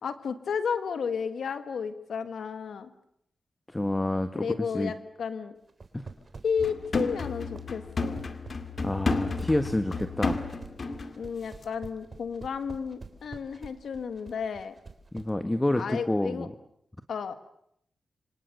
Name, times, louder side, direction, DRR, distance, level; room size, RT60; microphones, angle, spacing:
voice 1, 0.0-2.9 4.4-5.5 6.4-8.2 11.2-14.7 15.7-16.5 17.1-17.3, left 6 dB, 85° left, 11 dB, 1.7 m, -32 dB
voice 2, 3.7-4.9 5.9-6.1 8.8-10.4 15.1-16.5, left 1 dB, 20° left, 9 dB, 1.7 m, -28 dB
sound 1, 5.7-15.3, right 4 dB, 50° right, 3.6 m, -45 dB
sound 2, 6.6-11.2 11.5-11.6, left 3 dB, 60° left, 2.3 m, -32 dB
27.0 x 26.0 x 6.9 m, 0.74 s
cardioid pair, 50°, 0 cm